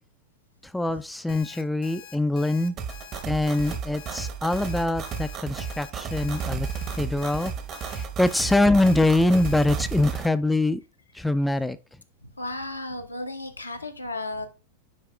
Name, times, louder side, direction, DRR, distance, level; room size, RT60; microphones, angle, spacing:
voice 1, 0.6-2.8 3.2-7.5 7.9-10.8 11.1-11.8, left 2 dB, 5° left, 0.3 m, -24 dB
Alarm, 1.3-9.7, left 9 dB, 50° left, 0.8 m, -46 dB
sound 1, 2.8-10.3, right 6 dB, 35° right, 0.9 m, -33 dB
voice 2, 12.2-14.5, left 2 dB, 85° left, 0.8 m, -34 dB
9.3 x 4.7 x 2.2 m
figure-of-eight pair, 90°, 0 cm